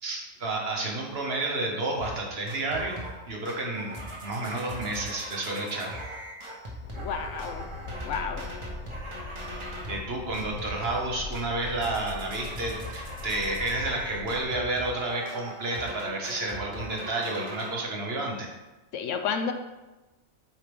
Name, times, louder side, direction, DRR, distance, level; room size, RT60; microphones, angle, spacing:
voice 1, 0.0-6.0 9.6-18.5, right 2 dB, 50° right, 0 dB, 1.3 m, -31 dB
sound 1, 2.0-2.2 2.5-3.2 3.4-10.1 10.3-11.1 11.3-17.7, right 1 dB, 25° right, 1.1 m, -40 dB
sound 2, 6.8-14.4, left 3 dB, 55° left, 0.5 m, -41 dB
voice 2, 7.0-7.7 8.0-8.5 18.9-19.5, left 6 dB, 75° left, 7 dB, 0.9 m, -31 dB
7.5 x 4.6 x 3.5 m, 1.1 s
omnidirectional pair, 1.4 m